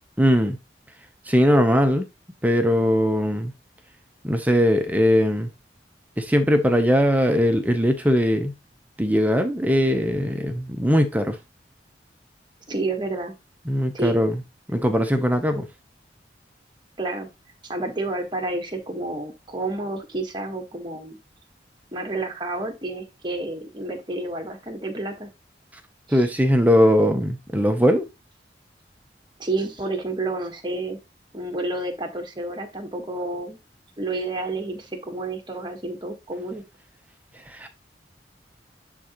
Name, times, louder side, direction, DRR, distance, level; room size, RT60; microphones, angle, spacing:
voice 1, 0.2-0.6 1.3-2.0 2.4-3.5 4.2-5.5 6.2-8.5 9.0-11.4 13.7-14.4 14.7-15.7 26.1-28.0 37.5-37.7, equal, 10° right, 0.7 m, -20 dB
voice 2, 12.7-13.3 13.9-14.3 17.0-17.3 17.6-21.2 21.9-25.3 26.1-26.2 29.4-31.0 31.3-33.6 34.0-36.6, right 2 dB, 25° right, 1.4 m, -30 dB
10.0 x 3.8 x 3.0 m
head